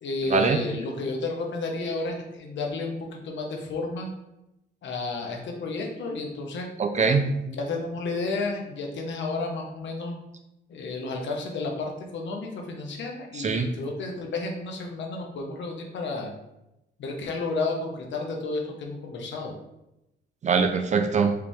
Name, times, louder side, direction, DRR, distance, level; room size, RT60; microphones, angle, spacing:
voice 1, 0.0-4.1 4.8-6.7 7.4-10.2 10.7-16.3 17.0-19.5, left 3 dB, 65° left, 1 dB, 1.0 m, -32 dB
voice 2, 6.8-7.3 13.3-13.7 20.4-21.4, right 5 dB, 35° right, 7 dB, 0.5 m, -22 dB
4.9 x 3.0 x 3.6 m, 0.89 s
cardioid pair, 90°, 20 cm